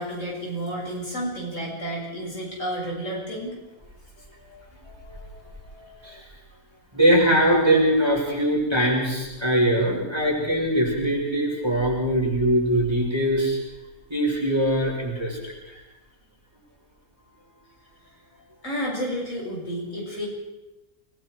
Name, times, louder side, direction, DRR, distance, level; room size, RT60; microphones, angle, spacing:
voice 1, 0.0-3.6 18.6-20.3, equal, 60° left, -3 dB, 7.5 m, -31 dB
voice 2, 4.5-6.3 6.9-13.6 14.1-15.8, right 1 dB, 15° right, -3 dB, 6.2 m, -22 dB
28.0 x 21.0 x 4.7 m, 1.0 s
omnidirectional pair, 1.5 m